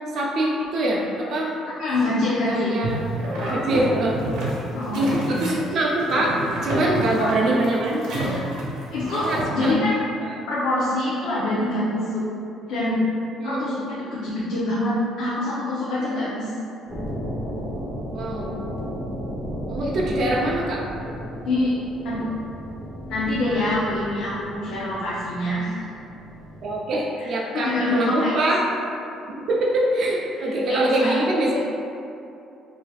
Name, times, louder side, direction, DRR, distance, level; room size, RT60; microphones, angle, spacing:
voice 1, 0.1-1.6 2.5-3.0 3.5-4.2 5.0-6.4 6.6-8.4 9.2-9.7 10.2-10.4 13.4-13.8 18.1-18.6 19.7-20.8 26.6-28.6 29.5-31.6, right 1 dB, 50° right, -3 dB, 0.5 m, -24 dB
voice 2, 1.8-2.8 4.7-5.4 7.2-7.3 8.9-10.0 10.5-12.3 12.7-13.1 13.4-16.5 21.4-21.8 22.0-22.3 23.1-25.8 27.2-28.4 30.3-30.4 30.7-31.2 31.5-31.6, left 1 dB, 70° left, -8 dB, 0.6 m, -25 dB
sound 1, 2.8-9.4, right 1 dB, 85° right, 0.9 m, -29 dB
sound 2, 16.9-26.8, equal, 5° right, 0.8 m, -34 dB
4.9 x 2.7 x 2.3 m, 2.7 s
cardioid pair, 145°, 0 cm